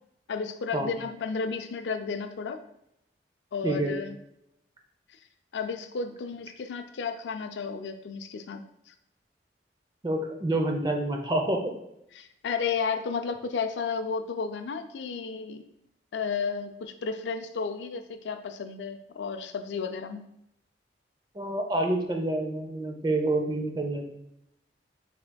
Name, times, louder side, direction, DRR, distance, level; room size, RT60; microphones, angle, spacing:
voice 1, 0.3-2.6 3.5-4.2 5.5-8.6 12.1-15.7 16.1-20.2, left 5 dB, 80° left, 8 dB, 0.4 m, -32 dB
voice 2, 3.6-3.9 10.0-11.7 21.4-24.2, right 1 dB, 25° right, 3 dB, 0.6 m, -28 dB
5.6 x 3.6 x 2.2 m, 0.80 s
head